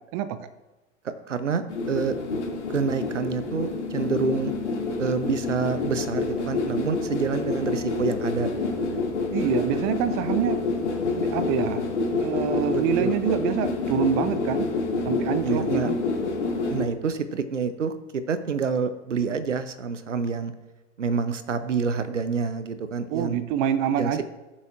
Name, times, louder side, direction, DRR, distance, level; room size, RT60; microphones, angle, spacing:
voice 1, 1.0-2.1 2.7-4.5 5.0-8.9 12.7-13.1 15.4-15.9 16.7-20.5 21.0-23.4 24.0-24.2, right 5 dB, 75° right, 12 dB, 0.8 m, -28 dB
sound 1, 1.7-16.8, left 3 dB, 70° left, 2.3 m, -28 dB
voice 2, 9.3-10.6 11.1-11.8 12.2-14.7 15.0-16.0 23.1-24.2, right 9 dB, 30° right, 13 dB, 0.5 m, -26 dB
18.5 x 7.2 x 2.4 m, 1.2 s
figure-of-eight pair, 90°, 37 cm